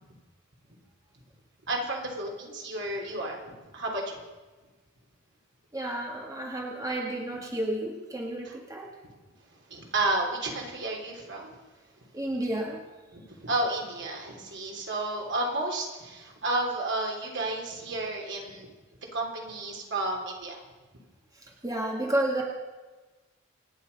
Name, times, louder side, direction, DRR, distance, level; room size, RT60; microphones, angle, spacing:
voice 1, 1.7-4.2 8.4-8.6 9.7-11.6 13.1-18.7 19.1-20.6, right 2 dB, 60° right, 0 dB, 3.4 m, -32 dB
voice 2, 5.7-8.9 12.1-12.8 21.6-22.4, right 1 dB, 15° right, -1 dB, 1.8 m, -31 dB
26.5 x 9.6 x 5.4 m, 1.2 s
head